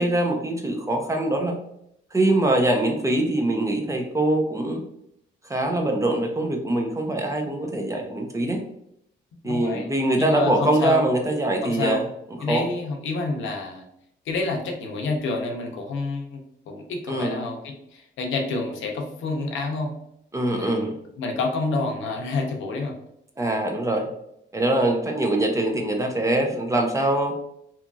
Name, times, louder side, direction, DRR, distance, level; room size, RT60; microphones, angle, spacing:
voice 1, 0.0-1.6 2.1-4.8 5.4-8.6 9.4-12.1 12.5-12.7 17.1-17.4 20.3-21.0 23.4-24.1 24.5-27.3, right 1 dB, 15° right, 2 dB, 0.5 m, -23 dB
voice 2, 9.4-9.9 10.2-11.0 11.6-12.0 12.4-13.9 14.3-19.9 20.5-20.9 21.2-22.9, left 3 dB, 85° left, 2 dB, 0.6 m, -28 dB
2.8 x 2.5 x 2.2 m, 0.76 s
cardioid pair, 95°, 20 cm